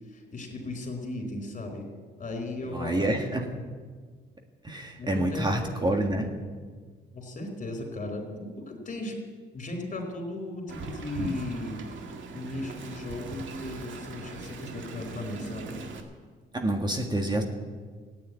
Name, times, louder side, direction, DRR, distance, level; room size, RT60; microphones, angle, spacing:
voice 1, 0.1-1.8 2.2-3.5 5.0-5.7 7.1-9.2 9.5-11.8 12.3-15.8, left 2 dB, 40° left, 4 dB, 4.4 m, -36 dB
voice 2, 2.7-3.4 4.6-6.3 16.5-17.4, right 1 dB, 20° right, 3 dB, 1.8 m, -27 dB
Wind, 10.7-16.0, right 3 dB, 75° right, 2.1 m, -39 dB
15.0 x 9.6 x 9.5 m, 1.5 s
cardioid pair, 90°, 20 cm